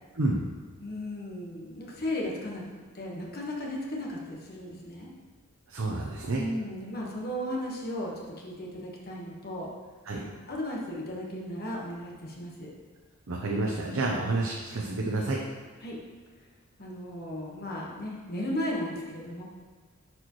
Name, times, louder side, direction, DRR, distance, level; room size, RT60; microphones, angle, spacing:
voice 1, 0.8-2.6 2.9-5.1 6.4-9.7 10.5-12.7 15.8-16.0 16.8-19.4, left 1 dB, 45° left, -2 dB, 1.3 m, -35 dB
voice 2, 5.7-6.4 10.1-10.2 13.3-15.4, right 2 dB, 65° right, -1 dB, 0.7 m, -29 dB
10.5 x 4.6 x 3.1 m, 1.5 s
head